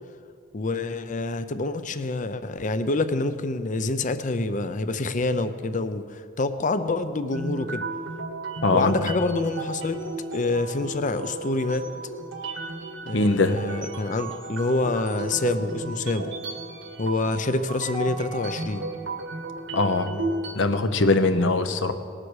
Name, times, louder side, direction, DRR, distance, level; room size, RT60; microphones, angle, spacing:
voice 1, 0.5-7.8 8.7-10.0 10.3-11.8 13.1-16.3 17.0-18.9, left 2 dB, 40° left, 11 dB, 0.6 m, -27 dB
sound 1, 7.3-20.6, right 2 dB, 80° right, 1.6 m, -34 dB
voice 2, 8.6-9.1 13.1-13.6 19.7-20.2 20.5-21.9, left 3 dB, 65° left, 9 dB, 0.9 m, -22 dB
19.0 x 7.6 x 6.4 m, 2.3 s
head